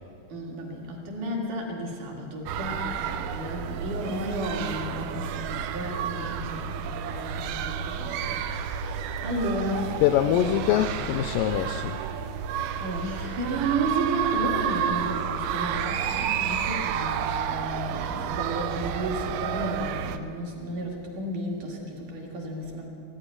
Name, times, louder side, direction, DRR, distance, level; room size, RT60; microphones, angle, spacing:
voice 1, 0.3-10.0 10.5-10.6 12.8-22.9, right 1 dB, 60° right, 0 dB, 3.4 m, -33 dB
sound 1, 2.5-20.2, right 8 dB, 85° right, 2.6 m, -31 dB
voice 2, 10.0-12.0, left 11 dB, 85° left, 7 dB, 1.9 m, -24 dB
15.0 x 9.0 x 9.8 m, 2.5 s
omnidirectional pair, 4.3 m